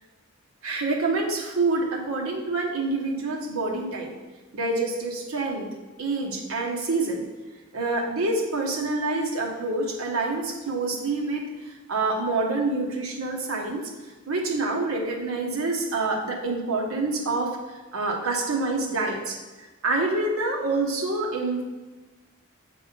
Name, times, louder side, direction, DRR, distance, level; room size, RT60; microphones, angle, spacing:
voice 1, 0.6-4.1 4.5-5.7 6.0-7.3 7.7-13.8 14.3-17.5 17.9-19.4 19.8-21.6, right 3 dB, 90° right, 0 dB, 1.2 m, -27 dB
7.7 x 3.5 x 5.2 m, 1.2 s
head